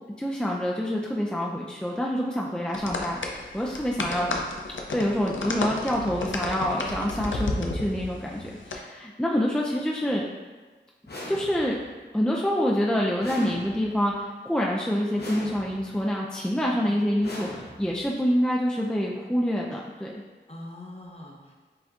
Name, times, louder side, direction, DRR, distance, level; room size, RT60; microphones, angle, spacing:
voice 1, 0.2-4.3 4.9-10.2 11.3-11.8 12.1-20.1, equal, 5° left, -2 dB, 0.4 m, -26 dB
sound 1, 2.7-8.8, left 2 dB, 90° left, 0.5 m, -32 dB
voice 2, 4.0-4.5 16.7-17.0 20.5-21.5, left 2 dB, 30° left, -2 dB, 0.8 m, -42 dB
sound 2, 11.1-11.9 13.2-14.1 15.2-16.0 17.2-18.1, left 1 dB, 60° left, 1.0 m, -40 dB
7.7 x 2.7 x 2.4 m, 1.3 s
wide cardioid pair, 45°, 19 cm